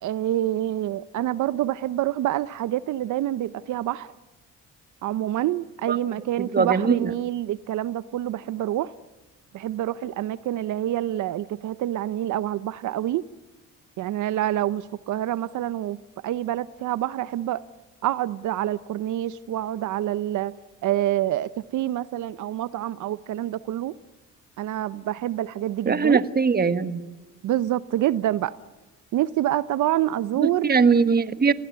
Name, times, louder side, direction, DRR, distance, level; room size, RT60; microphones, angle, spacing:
voice 1, 0.0-4.1 5.0-8.9 9.5-13.2 14.0-16.0 16.2-17.6 18.0-20.5 20.8-23.9 24.6-26.2 27.4-28.5 29.1-30.8, right 13 dB, 75° right, 0.8 m, -27 dB
voice 2, 6.4-7.1 25.8-27.0 30.4-31.5, right 5 dB, 30° right, 1.6 m, -21 dB
27.0 x 19.5 x 9.6 m
cardioid pair, 90°, 30 cm